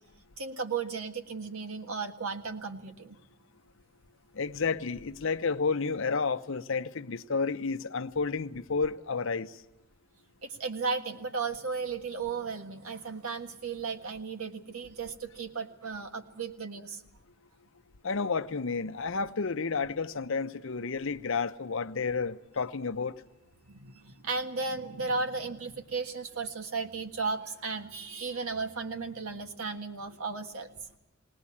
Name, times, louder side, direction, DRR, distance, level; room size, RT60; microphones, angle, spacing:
voice 1, 0.4-3.2 10.4-17.0 23.6-30.7, right 4 dB, 85° right, 1.6 m, -35 dB
voice 2, 4.3-9.6 18.0-23.2, left 4 dB, 60° left, 0.7 m, -31 dB
19.5 x 19.5 x 8.5 m
head